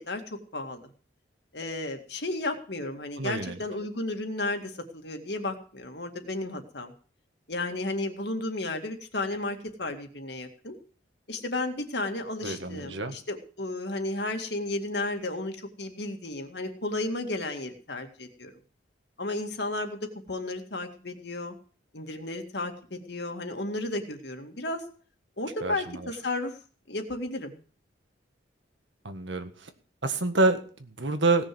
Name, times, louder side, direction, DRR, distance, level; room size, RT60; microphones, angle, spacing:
voice 1, 0.1-0.9 1.5-6.9 7.5-10.8 11.3-18.5 19.2-20.0 20.3-21.6 21.9-24.8 25.4-26.6 26.9-27.6, left 2 dB, 65° left, 5 dB, 2.1 m, -33 dB
voice 2, 3.2-3.6 12.4-13.2 25.6-25.8 29.0-29.7 30.0-31.5, right 3 dB, 80° right, 8 dB, 1.7 m, -27 dB
17.5 x 6.5 x 7.8 m, 0.42 s
head